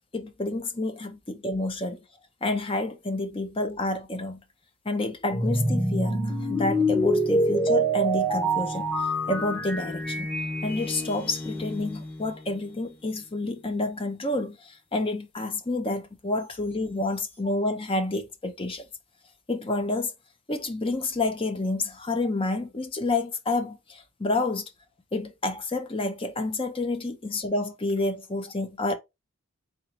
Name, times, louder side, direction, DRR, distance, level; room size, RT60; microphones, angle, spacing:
voice 1, 0.1-2.0 2.4-4.4 4.9-8.9 9.3-10.3 10.6-18.8 19.5-20.1 20.5-24.7 25.1-29.0, left 2 dB, 25° left, 0.7 m, -29 dB
sound 1, 5.3-12.6, right 1 dB, 5° left, 1.0 m, -26 dB
4.0 x 3.7 x 3.0 m
head